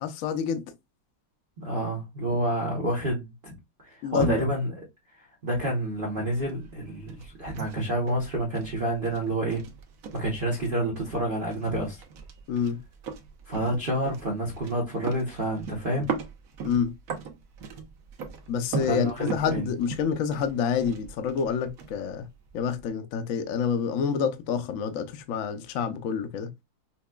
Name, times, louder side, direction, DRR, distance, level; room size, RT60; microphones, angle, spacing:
voice 1, 0.0-0.6 4.0-4.4 12.5-12.8 16.6-16.9 18.5-22.3 22.5-26.5, left 7 dB, 85° left, 0.7 m, -28 dB
voice 2, 1.6-3.5 3.8-4.8 5.2-9.6 10.1-12.0 13.5-16.1 18.8-19.7, right 1 dB, 35° right, 0.9 m, -29 dB
sound 1, 5.9-22.9, right 6 dB, 65° right, 0.9 m, -40 dB
5.8 x 2.3 x 2.2 m
omnidirectional pair, 2.1 m